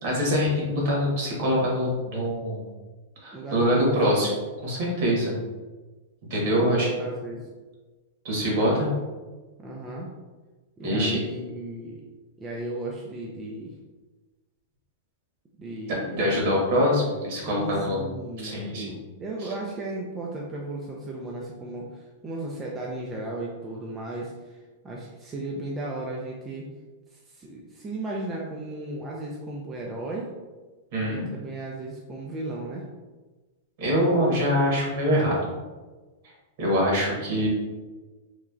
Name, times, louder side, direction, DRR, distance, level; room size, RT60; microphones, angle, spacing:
voice 1, 0.0-2.6 3.2-4.3 4.6-5.3 6.3-6.9 8.2-8.9 10.8-11.2 16.1-18.0 18.4-19.0 30.9-31.3 33.8-35.4 36.6-37.5, equal, 55° right, -3 dB, 1.2 m, -24 dB
voice 2, 3.3-4.0 6.4-7.5 9.6-10.1 10.8-12.0 12.4-13.7 15.6-16.3 17.4-24.6 24.8-26.7 27.1-30.3 31.1-32.8, right 2 dB, 20° right, -3 dB, 0.3 m, -35 dB
3.0 x 2.3 x 2.4 m, 1.3 s
hypercardioid pair, 140°, 0 cm